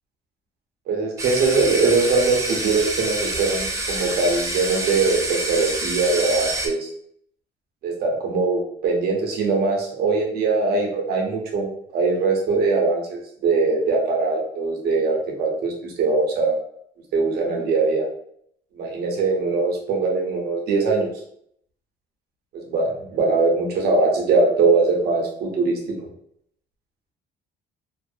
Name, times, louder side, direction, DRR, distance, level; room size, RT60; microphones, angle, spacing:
voice 1, 0.9-6.9 7.8-16.5 17.1-18.0 18.7-21.1 22.5-25.8, right 3 dB, 70° right, -1 dB, 0.8 m, -21 dB
sound 1, 1.2-6.7, right 2 dB, 20° right, 0.5 m, -27 dB
2.5 x 2.0 x 2.6 m, 0.68 s
cardioid pair, 110°, 17 cm